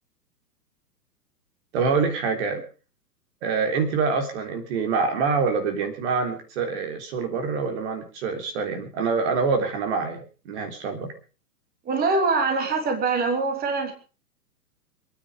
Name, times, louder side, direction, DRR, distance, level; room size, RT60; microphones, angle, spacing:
voice 1, 1.7-2.6 3.4-10.2 10.5-11.1, right 5 dB, 45° right, 5 dB, 3.4 m, -25 dB
voice 2, 11.8-13.9, right 4 dB, 20° right, 4 dB, 3.3 m, -23 dB
26.0 x 9.8 x 5.2 m, 0.37 s
figure-of-eight pair, 115°, 48 cm